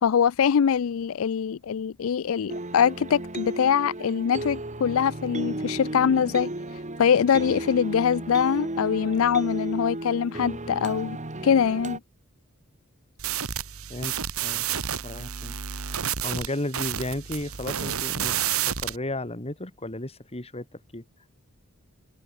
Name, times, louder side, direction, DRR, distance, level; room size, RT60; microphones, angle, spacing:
voice 1, 0.0-11.2 11.4-12.0, left 7 dB, 70° left, 0.4 m, -23 dB
sound 1, 2.5-12.0, right 1 dB, 35° right, 2.3 m, -34 dB
sound 2, 13.2-19.0, right 9 dB, 85° right, 1.6 m, -30 dB
voice 2, 15.0-15.6 16.2-21.0, left 1 dB, 30° left, 2.7 m, -34 dB
head